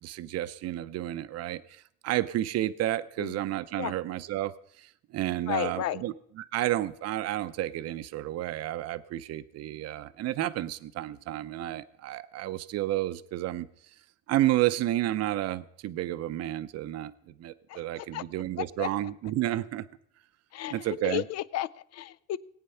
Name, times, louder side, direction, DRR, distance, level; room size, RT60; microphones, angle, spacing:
voice 1, 0.0-13.7 14.3-19.8 20.7-21.2, right 14 dB, 55° right, 14 dB, 0.6 m, -31 dB
voice 2, 5.5-6.0 17.7-18.2 18.6-19.1 20.5-22.4, left 13 dB, 60° left, 19 dB, 0.5 m, -34 dB
19.0 x 8.9 x 5.6 m, 0.68 s
cardioid pair, 135°, 29 cm